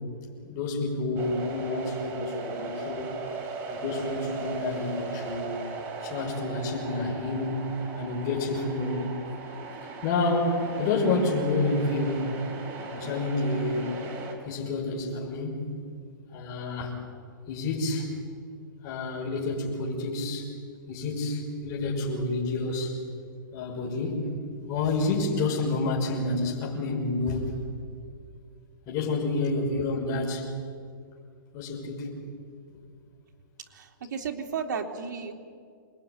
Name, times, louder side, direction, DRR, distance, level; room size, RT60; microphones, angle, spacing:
voice 1, 0.4-3.2 3.7-5.5 6.0-7.6 7.9-9.0 10.0-12.3 12.9-13.9 14.5-15.8 16.3-17.0 17.5-18.1 18.8-20.5 20.9-23.0 23.5-24.3 24.7-27.5 28.9-30.5 31.5-32.1, left 2 dB, 30° left, -2 dB, 6.1 m, -29 dB
sound 1, 1.2-14.3, right 4 dB, 20° right, 4.0 m, -38 dB
voice 2, 33.7-35.3, right 6 dB, 65° right, 2 dB, 3.3 m, -33 dB
27.0 x 21.0 x 9.7 m, 2.2 s
hypercardioid pair, 155°, 11 cm